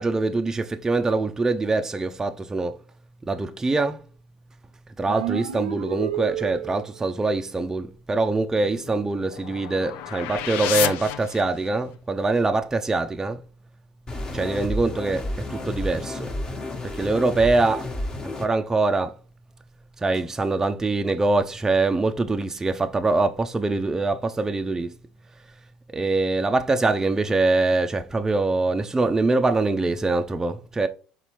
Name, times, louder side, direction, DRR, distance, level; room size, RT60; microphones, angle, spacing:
voice 1, 0.0-2.8 3.3-4.0 5.0-13.4 14.3-16.3 17.0-17.9 18.2-19.1 20.0-24.9 25.9-30.9, right 3 dB, 15° right, 0.4 m, -24 dB
sound 1, 5.1-7.0, right 11 dB, 85° right, 0.5 m, -30 dB
sound 2, 8.5-11.9, left 12 dB, 70° left, 0.4 m, -31 dB
sound 3, 14.1-18.5, left 1 dB, 25° left, 1.1 m, -31 dB
4.1 x 4.0 x 3.0 m
hypercardioid pair, 75°, 3 cm